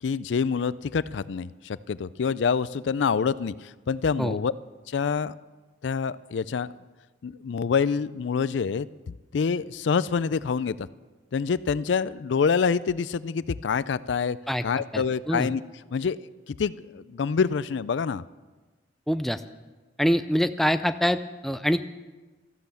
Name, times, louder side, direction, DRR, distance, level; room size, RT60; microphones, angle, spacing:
voice 1, 0.0-4.5 4.9-5.4 5.8-6.7 7.2-10.9 11.3-14.4 14.6-15.6 15.9-16.2 16.5-18.2, left 6 dB, 75° left, 18 dB, 0.4 m, -26 dB
voice 2, 14.9-15.5 19.1-19.4 20.0-21.9, equal, ahead, 10 dB, 0.4 m, -25 dB
14.0 x 12.0 x 7.0 m, 1.3 s
head